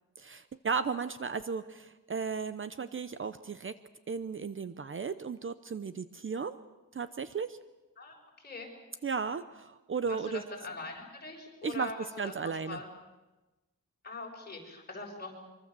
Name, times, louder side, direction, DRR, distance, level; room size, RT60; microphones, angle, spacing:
voice 1, 0.2-3.7 4.1-6.6 6.9-7.6 9.0-10.4 11.6-11.9 12.2-12.8, right 5 dB, 40° right, 12 dB, 0.8 m, -35 dB
voice 2, 10.0-12.3 12.7-12.8 14.0-15.3, left 3 dB, 30° left, 0 dB, 6.6 m, -42 dB
24.5 x 24.0 x 7.5 m, 1.1 s
wide cardioid pair, 160°, 32 cm